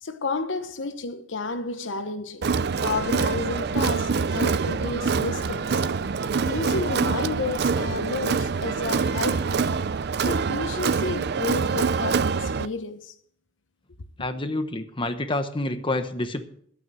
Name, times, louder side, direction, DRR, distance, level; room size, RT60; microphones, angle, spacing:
voice 1, 0.0-2.5 2.8-5.8 6.1-9.7 10.2-13.1, left 3 dB, 85° left, 1.0 m, -31 dB
Crowd, 2.4-12.7, right 5 dB, 60° right, 0.5 m, -25 dB
voice 2, 14.2-16.4, left 2 dB, 25° left, 1.0 m, -28 dB
12.0 x 9.2 x 6.2 m
head